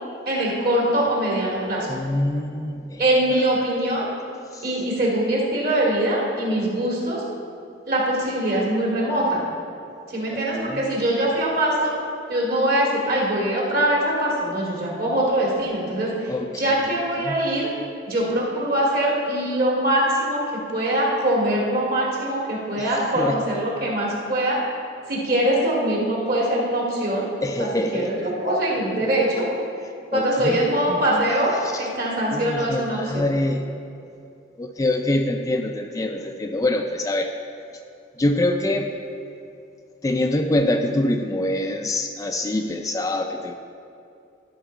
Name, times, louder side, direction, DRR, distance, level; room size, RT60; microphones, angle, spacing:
voice 1, 0.3-1.9 3.0-4.1 4.6-7.2 7.9-9.4 10.1-11.9 12.3-17.7 18.1-24.6 25.1-27.3 27.6-29.5 30.1-33.3, right 1 dB, 50° right, -4 dB, 2.2 m, -23 dB
voice 2, 1.9-3.0 4.5-4.6 10.3-10.8 16.3-16.8 17.2-17.4 22.8-23.4 27.4-28.3 30.1-31.3 31.6-31.9 32.3-33.7 34.6-37.3 38.2-38.9 40.0-43.5, left 1 dB, 15° left, 4 dB, 0.3 m, -25 dB
12.5 x 6.2 x 4.5 m, 2.6 s
head